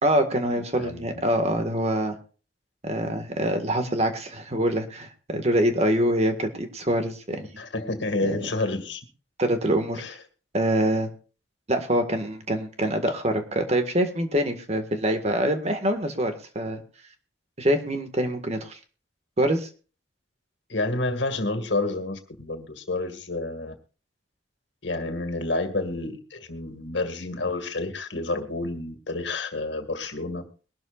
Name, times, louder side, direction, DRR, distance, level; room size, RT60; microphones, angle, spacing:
voice 1, 0.0-2.2 2.8-7.5 8.2-8.4 9.4-10.0 10.5-11.1 11.7-16.8 17.6-18.8 19.4-19.7, right 1 dB, 35° right, 6 dB, 1.8 m, -25 dB
voice 2, 0.7-1.2 7.6-9.0 10.0-10.1 20.7-23.8 24.8-30.4, left 2 dB, 80° left, 7 dB, 2.1 m, -29 dB
22.0 x 12.0 x 2.5 m, 0.36 s
head